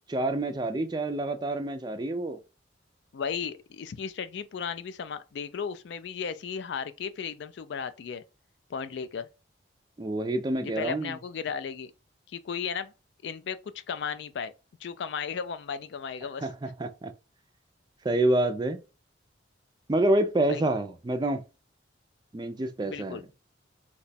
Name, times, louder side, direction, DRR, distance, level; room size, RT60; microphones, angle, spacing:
voice 1, 0.1-2.4 10.0-11.2 16.4-17.1 18.0-18.8 19.9-21.4 22.3-23.3, right 1 dB, 20° right, 0.4 m, -27 dB
voice 2, 3.1-8.2 8.7-9.3 10.6-11.9 12.3-12.9 13.2-14.5 14.8-16.5 20.5-20.6 22.8-23.2, left 6 dB, 65° left, 0.3 m, -35 dB
2.9 x 2.2 x 4.1 m
head